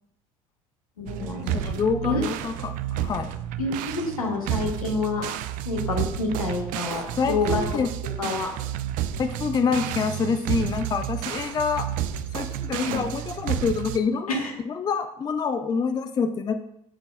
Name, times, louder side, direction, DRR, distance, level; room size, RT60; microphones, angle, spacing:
voice 1, 1.0-2.2 3.6-5.3 5.6-7.6 8.2-8.5 12.8-13.0 14.3-14.5, left 3 dB, 80° left, 0 dB, 1.2 m, -28 dB
sound 1, 1.1-14.0, right 10 dB, 50° right, 0.4 m, -31 dB
voice 2, 1.5-3.3 7.2-7.9 9.2-11.9 12.3-16.5, left 5 dB, 20° left, 8 dB, 0.5 m, -27 dB
11.0 x 4.0 x 2.3 m, 0.76 s
figure-of-eight pair, 65°, 18 cm